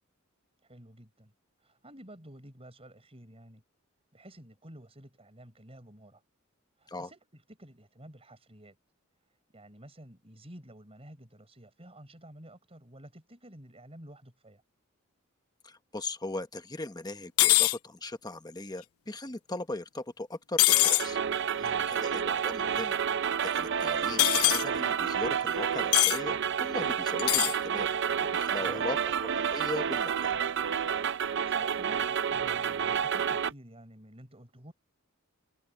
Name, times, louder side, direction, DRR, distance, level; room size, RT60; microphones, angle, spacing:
voice 1, 0.6-1.3 1.6-3.6 4.1-6.2 6.8-8.8 9.5-14.6 21.6-21.9 28.6-28.9 31.3-34.7, right 1 dB, 30° right, 5.9 m, -51 dB
voice 2, 15.6-21.2 21.5-23.0 23.4-27.9 28.3-29.0 29.4-30.3, left 2 dB, 20° left, 1.1 m, -39 dB
sound 1, 17.4-17.8 20.6-21.1 24.2-24.6 25.9-26.2 27.2-27.6, left 17 dB, 90° left, 0.5 m, -22 dB
sound 2, 20.7-33.5, right 7 dB, 55° right, 0.6 m, -30 dB
head